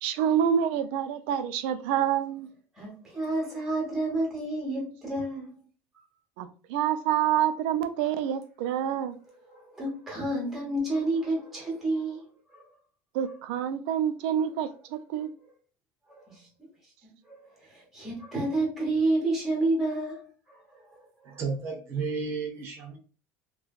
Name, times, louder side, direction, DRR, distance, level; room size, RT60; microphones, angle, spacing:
voice 1, 0.0-2.5 6.4-9.2 13.1-15.3, right 9 dB, 85° right, 0.3 m, -27 dB
voice 2, 2.7-5.5 8.8-9.0 9.5-12.6 16.1-16.7 17.0-21.0, right 2 dB, 5° right, 1.1 m, -30 dB
voice 3, 21.3-23.0, right 4 dB, 40° right, 0.8 m, -32 dB
3.1 x 2.2 x 2.3 m
cardioid pair, 155°, 6 cm